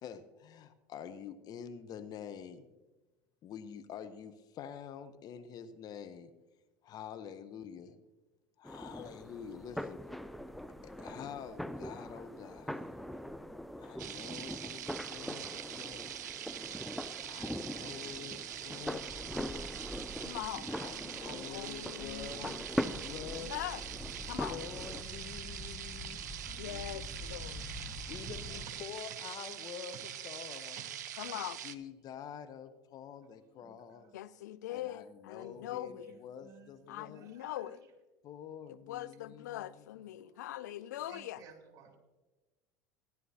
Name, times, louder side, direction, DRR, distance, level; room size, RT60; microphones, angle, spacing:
voice 1, 0.0-2.7 3.4-6.3 6.8-8.0 8.6-10.0 10.3-10.4 10.8-13.0 13.8-16.2 17.2-19.8 20.7-23.5 24.5-26.3 28.1-30.8 31.6-34.1 34.7-37.3 38.2-39.8, left 8 dB, 45° left, 0.8 m, -47 dB
sound 1, 8.6-25.0, equal, ahead, 0.3 m, -42 dB
sound 2, 14.0-31.7, right 11 dB, 80° right, 0.5 m, -44 dB
voice 2, 20.2-20.7 21.2-23.0 23.4-23.8 24.2-24.6 26.6-27.6 31.2-31.6 34.1-36.2 36.9-37.8 38.9-41.4, left 13 dB, 80° left, 0.4 m, -42 dB
sound 3, 22.9-28.7, left 2 dB, 15° left, 0.9 m, -46 dB
voice 3, 26.5-27.2 28.2-28.4 29.9-30.0 30.8-30.9 31.3-31.5 33.6-34.2 35.4-37.7 40.1-42.0, right 6 dB, 40° right, 2.5 m, -57 dB
15.5 x 10.5 x 2.8 m
hypercardioid pair, 80°, 9 cm